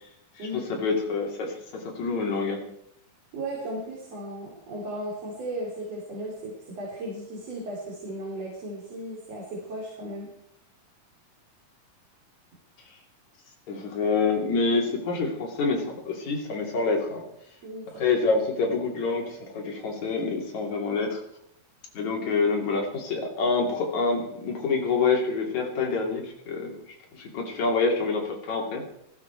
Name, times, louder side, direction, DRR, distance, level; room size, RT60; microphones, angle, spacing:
voice 1, 0.4-2.6 13.7-17.2 17.9-21.2 21.9-26.8 27.1-28.8, left 4 dB, 60° left, 0 dB, 4.2 m, -27 dB
voice 2, 3.3-10.3 17.6-18.0, right 1 dB, 50° right, -3 dB, 4.7 m, -36 dB
19.0 x 16.0 x 4.6 m, 0.77 s
omnidirectional pair, 3.7 m